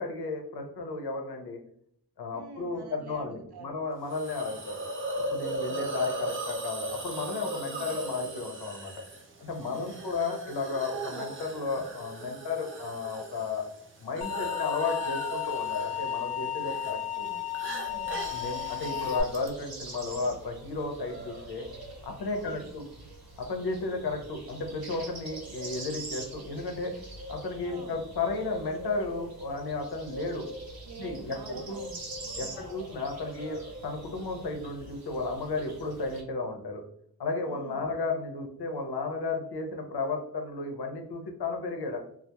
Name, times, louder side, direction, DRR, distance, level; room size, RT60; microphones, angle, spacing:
voice 1, 0.0-1.6 2.2-4.7 5.3-8.9 9.4-13.7 14.0-17.3 18.3-21.7 22.0-22.8 23.4-27.0 27.3-30.5 31.0-31.8 32.4-36.8 37.2-42.0, left 3 dB, 80° left, 3 dB, 0.6 m, -33 dB
voice 2, 2.3-3.8 5.5-5.9 7.7-8.0 9.6-10.1 17.0-18.3 22.3-22.7 27.6-28.0 30.8-32.7 37.5-37.8, right 4 dB, 85° right, 4 dB, 0.5 m, -48 dB
Hiss, 4.1-19.5, right 2 dB, 35° right, 0.4 m, -39 dB
sound 1, 14.2-19.2, left 11 dB, 20° left, 0.6 m, -33 dB
sound 2, 17.8-36.2, right 1 dB, 65° right, 0.9 m, -44 dB
2.2 x 2.0 x 2.8 m, 0.69 s
wide cardioid pair, 90°, 38 cm